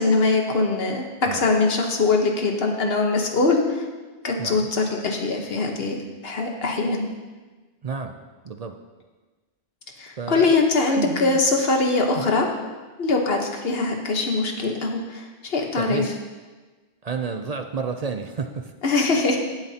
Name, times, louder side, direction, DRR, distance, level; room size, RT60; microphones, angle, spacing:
voice 1, 0.0-3.9 4.2-6.0 6.2-7.0 10.0-12.5 13.0-16.1 18.8-19.4, left 3 dB, 60° left, 2 dB, 1.4 m, -22 dB
voice 2, 7.8-8.1 8.4-8.8 10.2-10.6 10.9-11.4 15.8-16.1 17.0-18.7, right 5 dB, 50° right, 6 dB, 0.5 m, -30 dB
17.5 x 7.7 x 2.8 m, 1.3 s
omnidirectional pair, 1.2 m